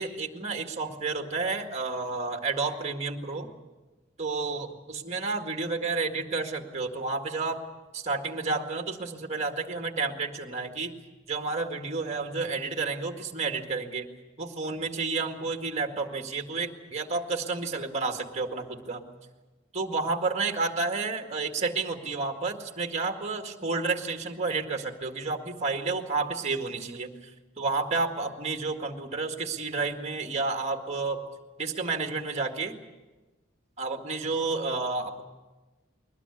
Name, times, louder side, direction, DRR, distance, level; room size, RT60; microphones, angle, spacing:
voice 1, 0.0-3.5 4.2-7.6 7.9-10.9 11.3-14.1 14.4-19.1 19.7-27.3 27.6-31.2 31.6-32.8 33.8-35.2, right 3 dB, 35° right, 4 dB, 1.9 m, -31 dB
21.5 x 20.0 x 8.4 m, 1.2 s
head